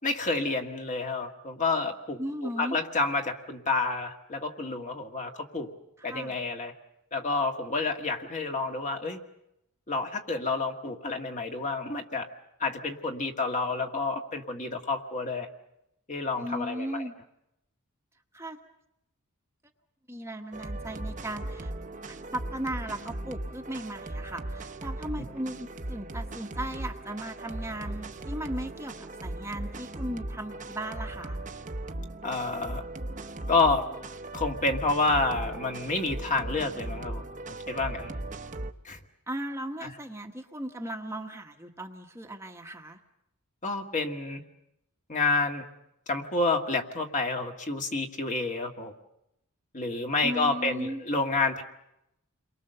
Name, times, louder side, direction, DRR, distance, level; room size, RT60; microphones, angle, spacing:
voice 1, 0.0-5.7 6.0-6.7 7.1-9.2 9.9-12.3 12.6-15.5 16.1-17.1 32.2-32.8 33.5-33.8 34.3-37.2 37.7-38.1 38.8-39.0 39.8-39.9 43.6-44.4 45.1-45.6 46.1-48.9 49.7-51.6, left 3 dB, 35° left, 3 dB, 1.8 m, -29 dB
voice 2, 2.2-2.8 6.0-6.4 16.3-17.1 18.3-18.6 20.1-21.7 22.1-31.4 39.3-43.0 50.2-51.0, right 1 dB, 10° right, 3 dB, 1.2 m, -37 dB
sound 1, 20.5-38.7, right 1 dB, 35° right, 1.0 m, -38 dB
29.5 x 23.0 x 6.8 m, 0.83 s
head